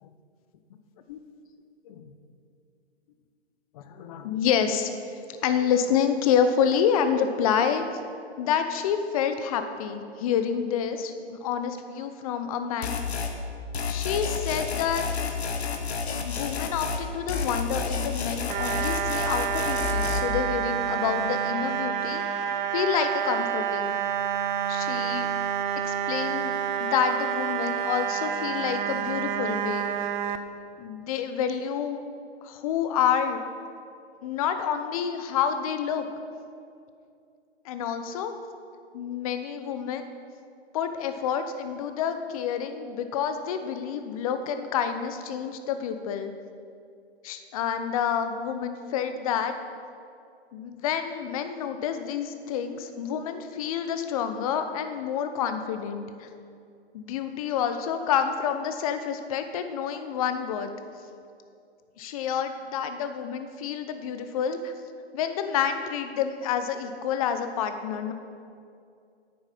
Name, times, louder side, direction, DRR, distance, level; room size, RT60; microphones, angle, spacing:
voice 1, 3.7-7.8 8.4-13.0 13.8-15.1 16.2-22.2 22.7-24.0 24.7-25.3 25.8-26.5 26.8-29.9 30.8-32.0 32.4-33.4 34.2-36.1 37.6-38.3 38.9-40.0 40.7-46.3 47.2-49.6 50.5-56.3 56.9-60.7 62.0-64.7 65.1-68.1, left 8 dB, 35° left, 8 dB, 0.8 m, -28 dB
sound 1, 12.8-13.3 13.7-17.0 17.3-20.2, left 5 dB, 70° left, 1.4 m, -30 dB
sound 2, 18.5-30.4, right 9 dB, 45° right, 0.6 m, -28 dB
9.2 x 8.7 x 5.9 m, 2.4 s
hypercardioid pair, 140°, 33 cm